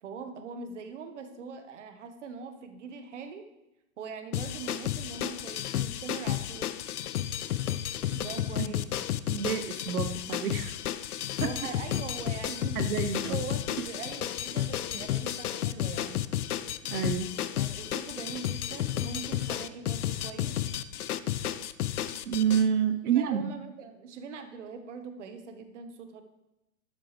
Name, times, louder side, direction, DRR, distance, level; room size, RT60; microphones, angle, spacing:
voice 1, 0.0-3.5 4.0-6.7 8.1-8.8 11.4-12.8 13.3-16.2 17.6-20.6 23.1-26.2, right 5 dB, 55° right, 7 dB, 1.4 m, -42 dB
sound 1, 4.3-22.6, left 11 dB, 85° left, 0.8 m, -32 dB
voice 2, 9.3-10.8 11.4-11.5 12.8-13.4 16.9-17.3 22.3-23.6, right 8 dB, 85° right, 9 dB, 1.0 m, -28 dB
12.5 x 10.5 x 3.3 m, 0.95 s
hypercardioid pair, 170°, 43 cm